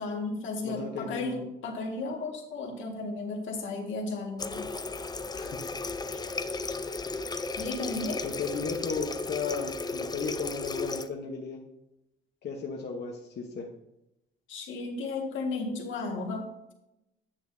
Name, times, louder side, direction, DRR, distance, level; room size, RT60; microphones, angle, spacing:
voice 1, 0.0-4.7 7.6-8.2 14.5-16.7, left 3 dB, 75° left, 1 dB, 1.8 m, -34 dB
voice 2, 0.6-1.4 5.4-5.6 8.2-11.6 12.4-13.7, left 5 dB, 55° left, 0 dB, 1.0 m, -35 dB
Water tap faucet, 4.4-11.1, left 3 dB, 20° left, 0.5 m, -35 dB
9.9 x 7.4 x 2.7 m, 0.89 s
cardioid pair, 90°, 20 cm